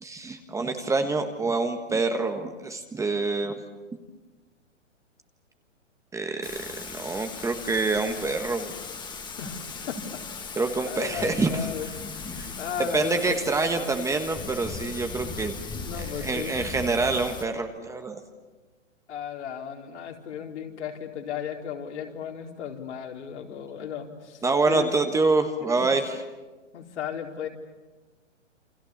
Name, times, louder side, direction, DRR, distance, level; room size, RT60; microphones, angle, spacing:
voice 1, 0.0-3.5 6.1-6.5 6.9-8.7 10.6-11.7 12.3-12.5 12.8-15.5 16.0-18.2 24.4-26.2, right 3 dB, 10° right, 6 dB, 1.4 m, -26 dB
Thunder / Rain, 6.4-17.4, left 4 dB, 10° left, 2.0 m, -38 dB
voice 2, 9.4-10.6 10.9-11.9 12.6-13.4 15.7-16.7 19.1-24.9 25.7-25.9 26.7-27.5, left 8 dB, 65° left, 2 dB, 4.3 m, -35 dB
29.0 x 26.0 x 7.2 m, 1.2 s
hypercardioid pair, 130°, 37 cm